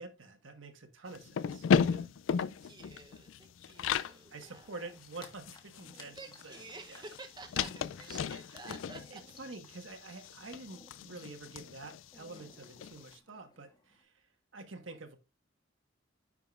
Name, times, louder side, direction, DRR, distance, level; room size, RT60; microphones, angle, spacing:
voice 1, 0.0-2.1 4.3-6.2 6.4-6.6 6.9-7.0 8.9-14.1 14.5-15.2, right 3 dB, 80° right, 1.4 m, -47 dB
sound 1, 1.1-4.2 4.6-4.7 4.9-13.0, left 6 dB, 80° left, 0.4 m, -35 dB
voice 2, 2.4-4.9 6.1-9.2 10.1-10.4, right 3 dB, 25° right, 0.8 m, -51 dB
sound 2, 3.8-14.0, left 2 dB, 25° left, 1.4 m, -61 dB
10.0 x 4.8 x 2.4 m
head